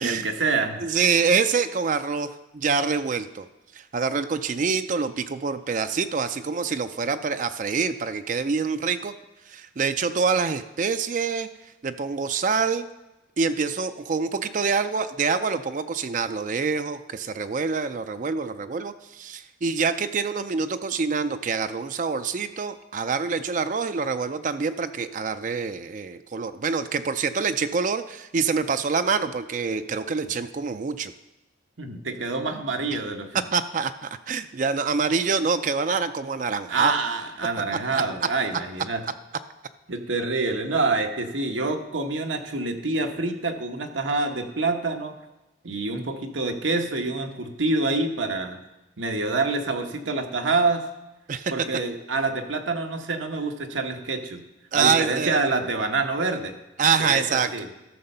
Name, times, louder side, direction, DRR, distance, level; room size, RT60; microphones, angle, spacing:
voice 1, 0.0-0.8 31.8-33.4 36.7-39.0 39.9-45.1 45.6-48.6 49.0-50.8 51.5-54.4 54.7-56.5 57.0-57.7, right 3 dB, 90° right, 4 dB, 1.2 m, -26 dB
voice 2, 0.8-3.5 3.7-9.1 9.5-11.5 11.8-12.9 13.4-31.1 33.5-36.9 37.9-38.0 51.3-51.7 54.7-55.4 56.8-57.5, right 5 dB, 40° right, 10 dB, 0.4 m, -26 dB
12.5 x 6.7 x 5.5 m, 0.99 s
head